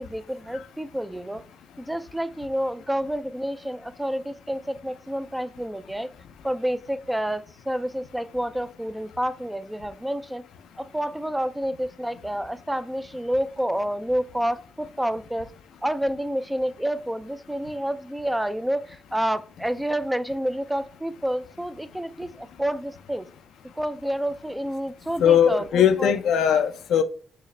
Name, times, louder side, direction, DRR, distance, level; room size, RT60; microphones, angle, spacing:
voice 1, 0.0-1.4 1.8-6.1 6.4-10.4 10.8-15.5 15.8-23.3 23.7-26.1, equal, 5° right, 0.3 m, -29 dB
voice 2, 25.2-27.0, left 9 dB, 85° left, 0.4 m, -19 dB
4.7 x 2.0 x 3.2 m
cardioid pair, 80°, 0 cm